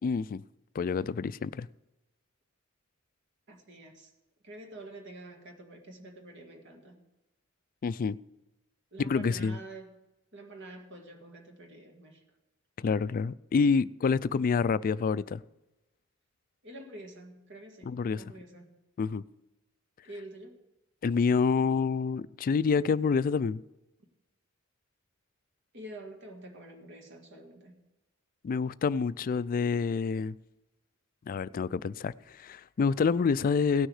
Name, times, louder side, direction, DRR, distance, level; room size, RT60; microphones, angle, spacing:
voice 1, 0.0-0.4 0.7-1.7 7.8-8.2 9.0-9.6 12.8-15.4 17.8-18.2 19.0-19.2 21.0-23.6 28.4-30.4 31.3-33.9, left 5 dB, 40° left, 0.3 m, -27 dB
voice 2, 3.5-4.1 4.4-7.0 8.9-9.9 10.3-12.2 16.6-18.8 20.0-20.6 25.7-27.8, right 1 dB, 60° right, 2.0 m, -47 dB
17.5 x 6.4 x 4.9 m
head